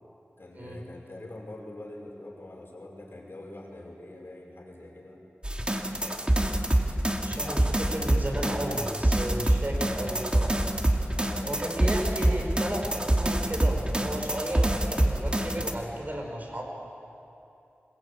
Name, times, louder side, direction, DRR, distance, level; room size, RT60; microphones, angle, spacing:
voice 1, 0.4-5.2 5.8-6.5 7.4-7.7 11.1-11.5, left 1 dB, 60° left, -1 dB, 5.5 m, -44 dB
sound 1, 5.4-15.7, right 1 dB, 25° right, 2.2 m, -26 dB
voice 2, 7.2-10.6 11.5-16.6, right 1 dB, 40° right, 1 dB, 5.4 m, -33 dB
26.0 x 22.0 x 8.8 m, 2.8 s
wide cardioid pair, 65°, 4 cm